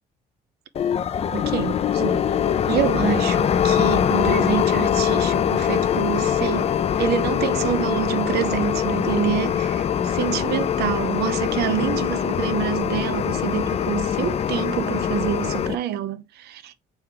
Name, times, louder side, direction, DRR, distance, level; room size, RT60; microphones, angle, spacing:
sound 1, 0.7-15.7, left 9 dB, 35° left, 0.4 m, -23 dB
voice 1, 1.3-2.2 2.7-6.7 7.0-16.7, right 11 dB, 75° right, 0.7 m, -27 dB
4.6 x 3.5 x 3.3 m
cardioid pair, 110°, 17 cm